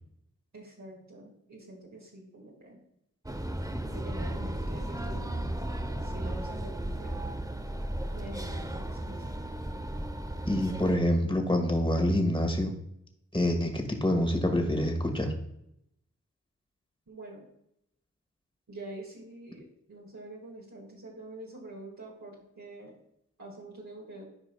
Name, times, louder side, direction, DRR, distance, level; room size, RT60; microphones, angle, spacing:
voice 1, 0.5-2.8 3.9-5.3 6.0-7.2 8.1-9.4 17.1-17.5 18.7-23.0 23.4-24.3, right 1 dB, 65° right, -3 dB, 1.8 m, -46 dB
sound 1, 3.3-11.0, right 1 dB, 10° right, 0.8 m, -35 dB
voice 2, 10.5-12.7 13.3-15.3, left 1 dB, 15° left, 4 dB, 1.7 m, -26 dB
11.5 x 4.9 x 2.3 m, 0.76 s
cardioid pair, 45°, 31 cm